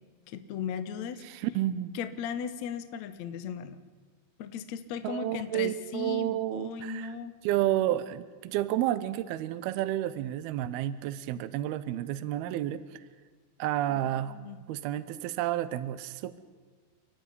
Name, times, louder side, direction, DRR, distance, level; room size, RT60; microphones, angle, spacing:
voice 1, 0.3-1.2 1.9-3.8 4.4-7.4 13.9-14.6, left 7 dB, 85° left, 11 dB, 1.5 m, -37 dB
voice 2, 1.2-1.9 5.0-7.1 7.4-12.8 13.6-14.4 14.7-16.4, right 13 dB, 75° right, 14 dB, 2.5 m, -30 dB
29.5 x 12.0 x 10.0 m, 1.5 s
omnidirectional pair, 5.2 m